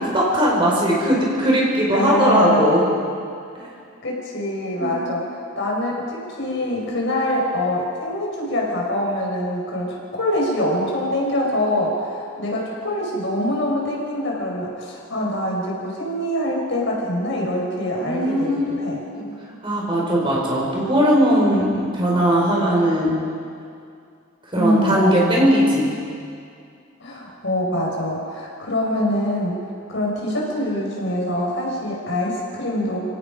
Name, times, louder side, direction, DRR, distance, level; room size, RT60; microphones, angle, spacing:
voice 1, 0.1-2.9 3.6-3.7 4.8-5.1 18.0-19.2 19.6-23.1 24.5-25.9, equal, 25° right, -3 dB, 5.1 m, -19 dB
voice 2, 1.9-2.7 4.0-19.0 24.5-25.6 27.0-29.6 29.9-33.1, left 1 dB, 60° left, -2 dB, 5.4 m, -24 dB
29.0 x 17.5 x 5.2 m, 2.3 s
head